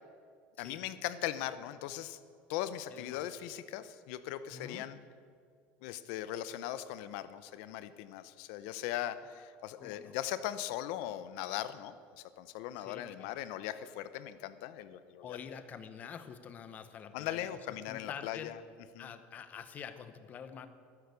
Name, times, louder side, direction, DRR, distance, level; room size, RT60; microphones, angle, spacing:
voice 1, 0.6-2.2 2.5-5.0 5.8-15.4 17.1-18.6 18.9-19.1, left 12 dB, 70° left, 13 dB, 0.8 m, -39 dB
voice 2, 2.9-3.3 4.5-4.9 9.8-10.2 12.8-13.3 15.2-17.6 17.9-18.5 19.0-20.7, left 7 dB, 30° left, 11 dB, 0.9 m, -47 dB
13.0 x 10.5 x 6.9 m, 2.2 s
cardioid pair, 145°, 5 cm